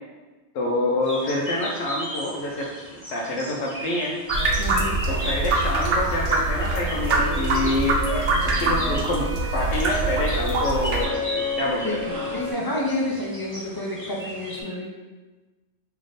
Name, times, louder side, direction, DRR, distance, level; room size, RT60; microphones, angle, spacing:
voice 1, 0.5-2.7 3.1-4.1 5.1-12.0, left 1 dB, 75° left, -3 dB, 0.8 m, -27 dB
sound 1, 1.0-14.6, equal, 10° left, 1.2 m, -37 dB
sound 2, 4.3-12.5, left 1 dB, 50° right, 1.2 m, -33 dB
sound 3, 4.3-11.0, right 2 dB, 85° right, 0.9 m, -24 dB
voice 2, 4.6-5.0 11.8-12.0 12.2-14.9, left 1 dB, 35° left, -3 dB, 0.3 m, -29 dB
3.3 x 2.8 x 3.9 m, 1.2 s
omnidirectional pair, 1.2 m